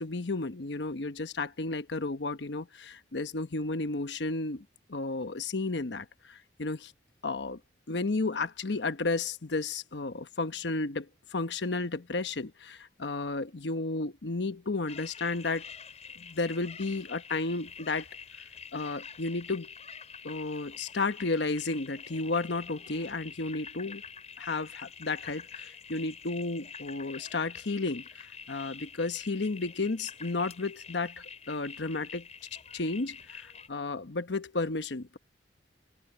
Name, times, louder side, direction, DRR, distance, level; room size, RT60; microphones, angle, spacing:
voice 1, 0.0-6.9 7.2-7.6 7.9-15.7 16.2-18.1 18.7-19.7 20.2-24.0 24.4-32.3 32.7-35.2, left 3 dB, 80° left, 1.0 m, -33 dB
sound 1, 14.9-33.7, left 6 dB, 40° left, 7.5 m, -47 dB
head